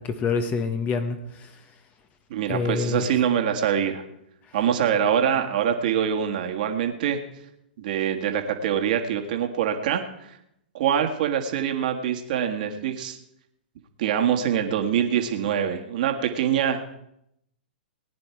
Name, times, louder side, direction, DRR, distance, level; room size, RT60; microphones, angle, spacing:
voice 1, 0.0-1.5 2.5-3.1, left 5 dB, 25° left, 8 dB, 1.2 m, -27 dB
voice 2, 2.3-4.0 4.5-7.2 7.8-10.0 10.7-13.2 14.0-16.8, right 9 dB, 55° right, 3 dB, 1.8 m, -24 dB
18.5 x 9.8 x 4.7 m, 0.77 s
hypercardioid pair, 120°, 5 cm